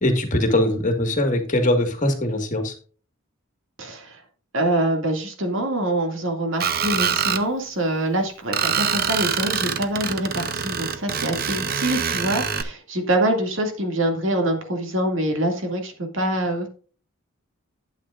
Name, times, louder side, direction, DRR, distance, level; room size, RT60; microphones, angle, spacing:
voice 1, 0.0-2.7, left 1 dB, 35° left, 5 dB, 1.7 m, -21 dB
voice 2, 3.8-4.2 4.5-16.7, right 1 dB, 60° right, 3 dB, 2.3 m, -25 dB
Screech, 6.6-7.4 8.5-12.6, right 7 dB, 45° right, 0.7 m, -25 dB
12.0 x 8.6 x 2.5 m, 0.39 s
head